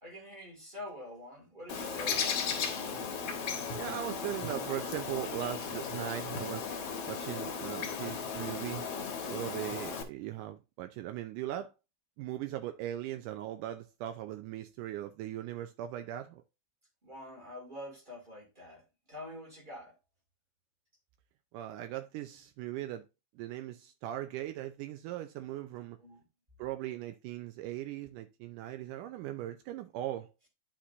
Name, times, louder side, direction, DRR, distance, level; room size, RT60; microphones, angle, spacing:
voice 1, 0.0-2.8 17.0-20.0 26.0-26.2, left 1 dB, 20° right, 1.8 m, -46 dB
Bird, 1.7-10.0, left 6 dB, 60° left, 2.0 m, -36 dB
voice 2, 3.8-6.7 7.1-8.9 9.3-11.7 12.2-16.4 21.5-23.0 23.4-26.0 26.6-30.3, right 13 dB, 85° right, 2.2 m, -39 dB
10.0 x 5.9 x 2.6 m
omnidirectional pair, 3.8 m